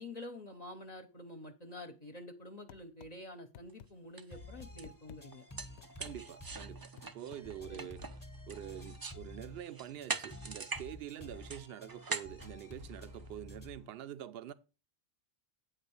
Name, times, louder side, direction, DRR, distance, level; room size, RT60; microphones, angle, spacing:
voice 1, 0.0-5.5 7.7-7.9, left 1 dB, 40° left, 0.9 m, -48 dB
sound 1, 2.7-3.1 3.5-3.9 4.4-5.2 5.8-6.2 7.0-7.8, left 10 dB, 85° left, 0.8 m, -53 dB
sound 2, 3.7-3.8 4.2-4.4 4.8-4.9 5.3-9.2 9.6-10.9 11.2-13.3, right 4 dB, 40° right, 0.3 m, -42 dB
sound 3, 4.3-13.9, left 1 dB, 20° left, 1.0 m, -51 dB
voice 2, 6.0-6.8 7.1-8.0 8.5-14.5, right 11 dB, 70° right, 0.8 m, -46 dB
8.7 x 3.7 x 7.0 m
omnidirectional pair, 1.1 m